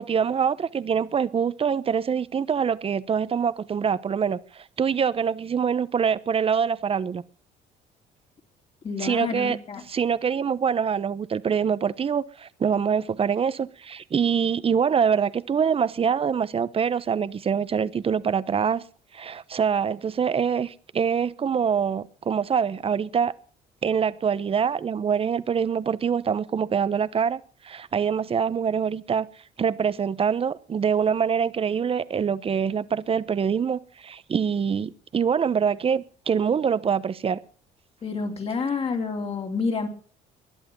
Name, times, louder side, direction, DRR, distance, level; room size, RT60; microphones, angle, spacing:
voice 1, 0.0-7.2 9.0-9.6 9.9-18.8 19.1-23.3 23.8-29.3 29.6-37.4, right 7 dB, 35° right, 1.0 m, -25 dB
voice 2, 8.8-9.8 38.0-39.9, left 4 dB, 35° left, 3.2 m, -28 dB
20.5 x 11.0 x 5.4 m
cardioid pair, 110°, 17 cm